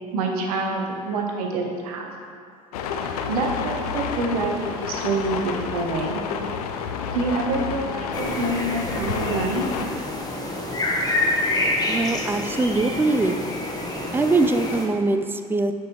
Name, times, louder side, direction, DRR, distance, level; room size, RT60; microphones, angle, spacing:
voice 1, 0.1-2.1 3.3-6.2 7.1-9.7, right 3 dB, 75° right, 2 dB, 0.9 m, -26 dB
sound 1, 2.7-9.9, left 6 dB, 75° left, 0.5 m, -30 dB
sound 2, 8.1-14.9, left 2 dB, 20° left, 1.1 m, -27 dB
voice 2, 11.9-13.4 14.1-15.7, right 3 dB, 10° right, 8 dB, 0.4 m, -22 dB
6.2 x 5.4 x 3.0 m, 2.4 s
hypercardioid pair, 70°, 19 cm